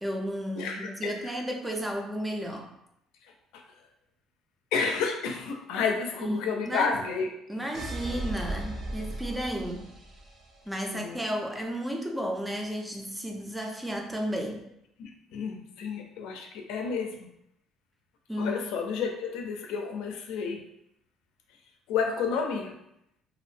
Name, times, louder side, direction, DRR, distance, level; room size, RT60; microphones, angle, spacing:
voice 1, 0.0-2.7 6.2-6.9 7.5-9.8 10.7-14.6 18.3-18.5, equal, 5° right, 2 dB, 0.4 m, -33 dB
voice 2, 0.6-1.2 3.5-3.6 4.7-7.3 7.6-7.7 10.9-11.2 15.0-17.3 18.4-20.6 21.9-22.8, left 5 dB, 85° left, 3 dB, 0.4 m, -31 dB
sound 1, 7.7-10.6, right 1 dB, 50° right, 0.6 m, -36 dB
2.4 x 2.0 x 3.2 m, 0.79 s
cardioid pair, 125°, 0 cm